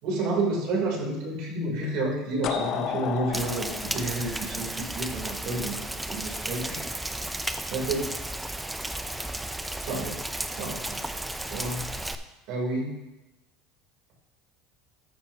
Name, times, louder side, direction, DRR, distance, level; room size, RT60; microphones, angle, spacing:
voice 1, 0.0-6.8 7.7-8.1 9.8-10.2 10.5-11.0 11.5-11.8 12.5-12.9, right 2 dB, 60° right, -1 dB, 3.0 m, -30 dB
sound 1, 2.4-5.3, left 9 dB, 45° left, 0.6 m, -32 dB
Rain, 3.3-12.1, right 1 dB, 5° right, 0.4 m, -34 dB
13.0 x 7.5 x 2.8 m, 1.0 s
cardioid pair, 145°, 0 cm